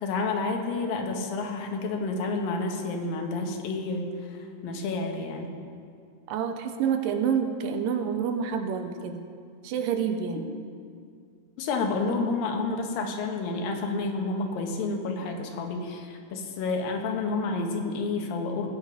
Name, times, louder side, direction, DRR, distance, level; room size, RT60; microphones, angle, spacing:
voice 1, 0.0-4.1 4.4-5.5 11.6-18.7, left 3 dB, 90° left, 3 dB, 2.9 m, -30 dB
voice 2, 6.3-9.2 9.6-10.5, right 7 dB, 85° right, 7 dB, 2.4 m, -28 dB
18.5 x 7.5 x 5.1 m, 2.3 s
omnidirectional pair, 4.0 m